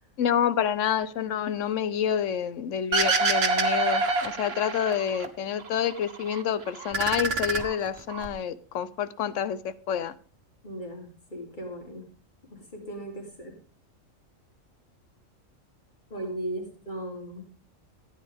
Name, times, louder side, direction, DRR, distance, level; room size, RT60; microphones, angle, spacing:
voice 1, 0.2-10.1, left 9 dB, 75° left, 1.1 m, -28 dB
sound 1, 2.9-5.3 5.6-6.4 6.7-8.3, right 3 dB, 55° right, 1.4 m, -26 dB
voice 2, 10.6-12.0 12.5-13.5 16.1-17.4, right 1 dB, 35° left, 3.2 m, -37 dB
14.0 x 9.3 x 3.5 m
omnidirectional pair, 1.3 m